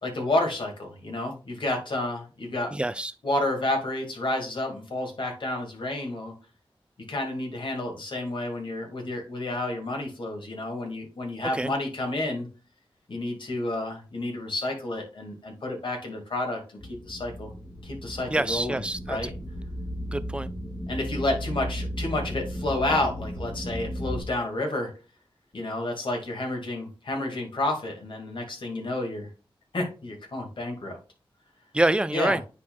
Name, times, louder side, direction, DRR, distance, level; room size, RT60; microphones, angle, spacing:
voice 1, 0.0-2.7 3.2-6.3 7.1-12.5 13.1-16.8 17.1-17.5 17.8-18.8 19.1-19.3 20.9-24.9 25.5-29.3 29.7-31.0 32.1-32.4, left 2 dB, 60° left, 2.1 m, -30 dB
voice 2, 2.7-3.1 11.5-11.7 18.3-19.3 20.1-20.5 31.7-32.4, right 1 dB, 10° right, 0.4 m, -26 dB
sound 1, 16.8-24.2, equal, 40° left, 2.0 m, -35 dB
9.6 x 4.4 x 2.3 m
wide cardioid pair, 85°, 9 cm